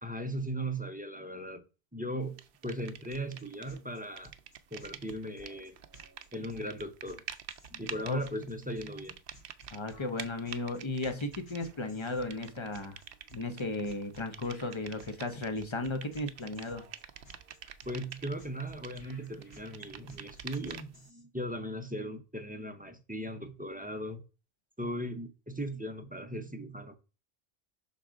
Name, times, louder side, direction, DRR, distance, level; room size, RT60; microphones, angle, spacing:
voice 1, 0.0-1.6 1.9-4.3 4.7-5.8 6.3-7.2 7.8-9.1 17.9-24.2 24.8-27.0, right 1 dB, 10° right, 0.6 m, -38 dB
sound 1, 2.4-3.8 4.0-21.1, right 9 dB, 65° right, 0.7 m, -48 dB
sound 2, 3.1-21.2, equal, 70° left, 4.0 m, -57 dB
voice 2, 9.7-13.0 13.3-16.8, left 2 dB, 30° left, 0.9 m, -35 dB
5.8 x 3.6 x 5.0 m
omnidirectional pair, 1.1 m